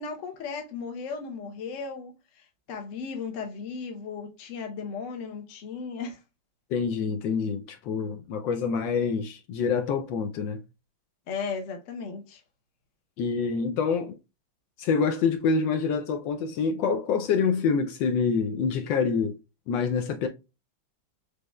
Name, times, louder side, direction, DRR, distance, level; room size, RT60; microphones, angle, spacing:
voice 1, 0.0-2.1 2.7-6.2 11.3-12.4, left 5 dB, 55° left, 0.8 m, -35 dB
voice 2, 6.7-10.6 13.2-14.2 14.8-19.4 19.7-20.3, left 5 dB, 75° left, 1.2 m, -26 dB
5.2 x 3.3 x 2.2 m
omnidirectional pair, 2.2 m